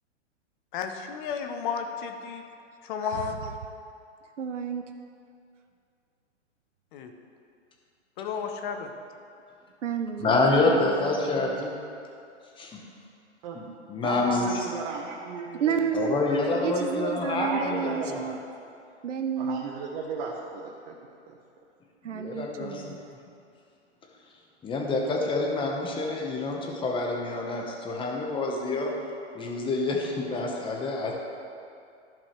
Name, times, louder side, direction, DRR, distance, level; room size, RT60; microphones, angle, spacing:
voice 1, 0.7-2.4 2.8-3.4 6.9-7.1 8.2-8.9, left 6 dB, 45° left, 6 dB, 1.0 m, -32 dB
voice 2, 3.0-3.6 4.4-4.9 9.8-11.6 14.9-15.0 15.6-18.4 19.0-19.7 22.0-23.0, right 6 dB, 85° right, 6 dB, 0.8 m, -32 dB
voice 3, 10.2-11.8 12.6-12.8 13.5-13.6 13.9-14.6 15.9-18.3 22.1-22.9 24.6-28.9 29.3-31.1, left 2 dB, 15° left, 0 dB, 1.1 m, -27 dB
voice 4, 14.0-15.9 17.4-18.2 19.4-21.0 21.3-21.4, right 5 dB, 45° right, -1 dB, 1.1 m, -34 dB
14.0 x 5.4 x 3.2 m, 2.5 s
hypercardioid pair, 125°, 36 cm